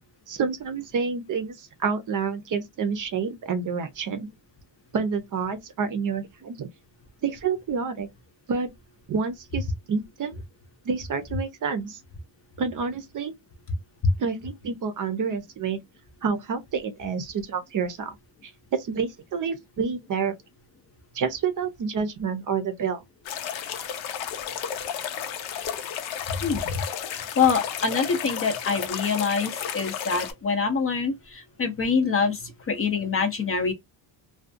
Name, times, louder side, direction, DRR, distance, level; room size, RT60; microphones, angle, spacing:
voice 1, 0.3-4.3 4.9-6.7 7.2-8.1 8.5-8.7 9.1-10.4 10.8-12.0 12.6-13.3 14.2-15.8 16.2-18.2 18.4-20.3 21.1-23.0, right 5 dB, 45° right, 0.6 m, -28 dB
sound 1, 23.3-30.3, left 9 dB, 85° left, 0.7 m, -33 dB
voice 2, 26.4-26.8 27.1-33.7, left 5 dB, 30° left, 0.5 m, -25 dB
2.4 x 2.3 x 2.5 m
cardioid pair, 130°, 46 cm